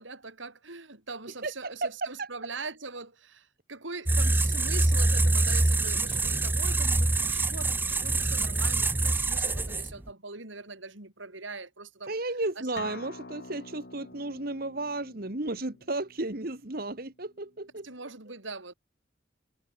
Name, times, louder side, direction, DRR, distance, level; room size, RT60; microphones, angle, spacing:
voice 1, 0.0-12.1 12.6-12.9 17.8-18.7, right 3 dB, 80° right, 4.0 m, -42 dB
voice 2, 1.4-2.3 12.1-17.9, right 2 dB, 50° right, 1.7 m, -33 dB
sound 1, 4.1-10.1, right 2 dB, 10° right, 0.4 m, -25 dB
Acoustic guitar, 12.8-18.0, left 2 dB, 60° left, 3.6 m, -48 dB
head